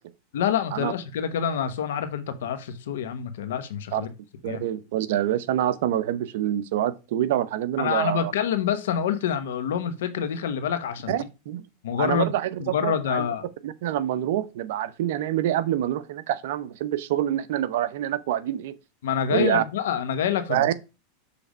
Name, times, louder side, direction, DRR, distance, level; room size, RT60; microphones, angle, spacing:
voice 1, 0.3-4.1 4.4-4.6 7.8-11.2 11.8-12.3 12.6-13.4 19.0-20.9, left 8 dB, 85° left, 1.1 m, -27 dB
voice 2, 4.4-8.3 11.1-11.6 12.0-13.2 13.6-18.7 19.3-19.6 20.5-20.7, right 12 dB, 70° right, 0.7 m, -26 dB
6.9 x 3.4 x 5.1 m
supercardioid pair, 145°, 0 cm